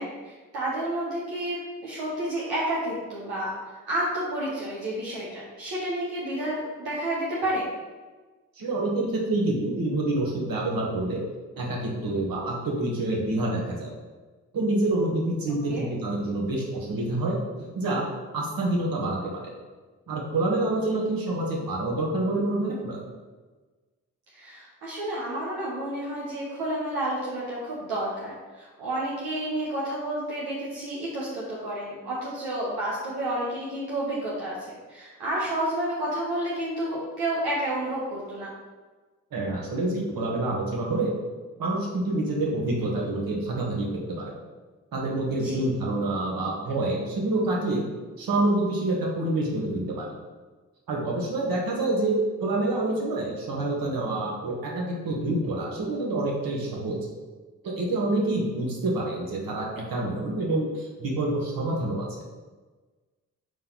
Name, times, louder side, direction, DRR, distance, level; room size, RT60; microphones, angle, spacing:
voice 1, 0.0-7.6 15.7-15.9 24.3-38.5 45.3-45.7, right 1 dB, 90° right, -5 dB, 1.0 m, -30 dB
voice 2, 8.5-11.2 11.6-13.9 14.5-18.0 18.3-19.5 20.1-23.0 39.3-41.1 41.6-44.4 44.9-47.8 48.2-50.1 50.9-57.0 57.6-62.2, right 2 dB, 65° right, -1 dB, 1.6 m, -27 dB
5.4 x 4.5 x 4.0 m, 1.3 s
supercardioid pair, 45°, 37 cm